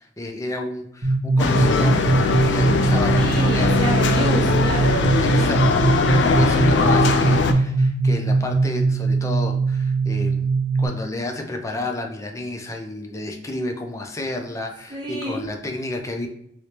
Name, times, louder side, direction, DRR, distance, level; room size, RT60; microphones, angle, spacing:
voice 1, 0.0-3.7 5.2-16.3, left 2 dB, 15° left, 3 dB, 0.5 m, -31 dB
sound 1, 1.0-10.9, right 3 dB, 60° right, 0.7 m, -21 dB
sound 2, 1.4-7.5, left 4 dB, 75° left, 0.4 m, -20 dB
voice 2, 3.1-5.0 5.3-5.6 14.9-15.5, equal, 25° right, -4 dB, 0.9 m, -28 dB
3.2 x 3.1 x 2.8 m, 0.73 s
head